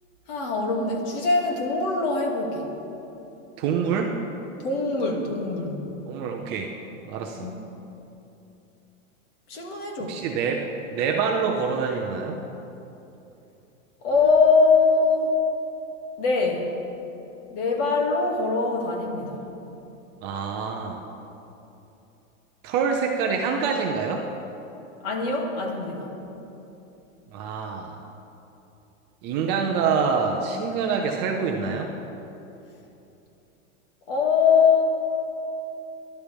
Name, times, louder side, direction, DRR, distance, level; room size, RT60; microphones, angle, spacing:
voice 1, 0.3-2.7 4.6-5.9 7.4-7.6 9.5-10.2 14.0-15.4 16.2-16.7 17.5-19.4 25.0-26.1 34.1-34.8, left 4 dB, 40° left, 0 dB, 2.4 m, -22 dB
voice 2, 3.6-4.1 6.1-6.7 7.1-7.5 10.0-12.4 20.2-21.0 22.6-24.3 27.3-28.0 29.2-31.9, right 5 dB, 25° right, 2 dB, 0.7 m, -26 dB
22.5 x 11.5 x 3.5 m, 2.9 s
supercardioid pair, 160°, 41 cm